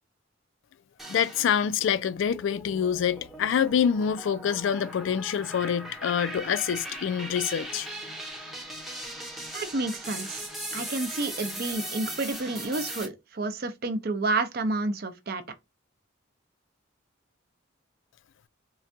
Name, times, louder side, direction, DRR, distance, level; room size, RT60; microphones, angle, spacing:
sound 1, 1.0-1.9 2.3-13.1, right 1 dB, ahead, 0.6 m, -39 dB
voice 1, 1.1-7.9, left 8 dB, 70° left, 0.3 m, -26 dB
voice 2, 9.5-10.5 10.7-15.4, right 2 dB, 50° right, 0.5 m, -30 dB
3.8 x 2.2 x 2.6 m
head